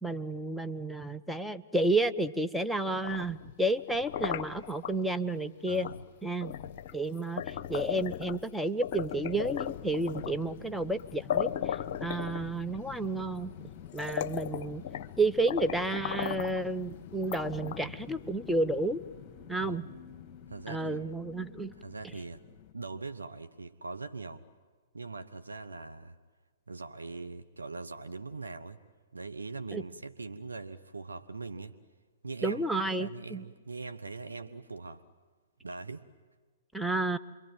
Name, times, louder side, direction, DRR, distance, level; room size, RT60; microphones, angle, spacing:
voice 1, 0.0-5.9 6.2-6.5 6.9-13.5 13.9-14.8 15.2-19.0 19.5-19.8 20.7-21.7 29.7-29.8 32.4-33.4 36.7-37.2, right 2 dB, ahead, 8 dB, 0.8 m, -31 dB
sound 1, 2.9-5.0 5.8-6.0 6.4-8.5 8.8-10.5 11.0-11.1 11.3-12.8 13.5-13.6 13.9-15.2 15.5-16.6 17.2-18.0, left 9 dB, 45° left, 0.9 m, -36 dB
voice 2, 5.7-6.0 19.6-19.9 20.5-21.0 21.8-22.4 22.7-24.4 24.9-26.2 26.7-28.8 29.1-31.8 32.2-32.6 33.0-35.0 35.6-36.1, right 3 dB, 85° right, 8 dB, 1.1 m, -41 dB
sound 2, 9.3-22.7, left 9 dB, 30° left, 2.5 m, -49 dB
27.5 x 23.5 x 9.2 m, 1.4 s
figure-of-eight pair, 120°, 0 cm